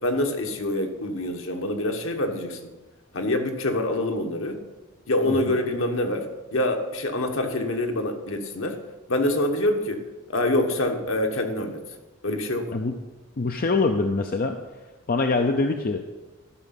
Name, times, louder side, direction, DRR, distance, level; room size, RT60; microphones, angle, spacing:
voice 1, 0.0-2.6 3.1-4.6 5.1-8.8 9.1-11.8 12.2-12.7, left 1 dB, 65° left, 4 dB, 1.2 m, -26 dB
voice 2, 13.4-14.6 15.1-16.1, left 3 dB, 40° left, 5 dB, 0.5 m, -24 dB
12.5 x 6.2 x 5.8 m, 1.2 s
head